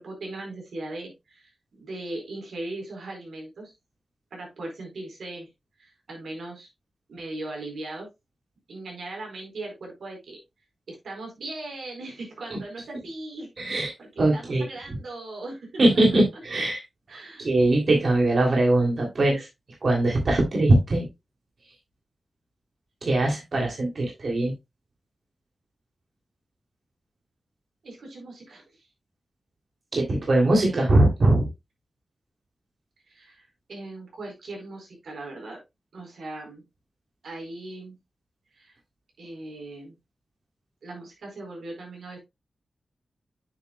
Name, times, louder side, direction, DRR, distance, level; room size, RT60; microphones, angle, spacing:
voice 1, 0.0-3.7 4.3-5.5 5.8-6.7 7.1-8.1 8.7-10.4 10.9-16.2 17.1-17.5 27.8-28.9 30.4-31.1 33.1-35.6 35.9-36.6 37.2-38.0 38.5-38.8 39.2-39.9 40.8-42.2, right 2 dB, 85° right, 1 dB, 4.4 m, -39 dB
voice 2, 13.6-13.9 14.2-14.6 15.8-16.8 17.4-19.5 19.8-21.1 23.0-24.5 29.9-31.5, right 2 dB, 55° right, 0 dB, 2.9 m, -21 dB
9.4 x 6.8 x 2.2 m, 0.21 s
wide cardioid pair, 110°, 0 cm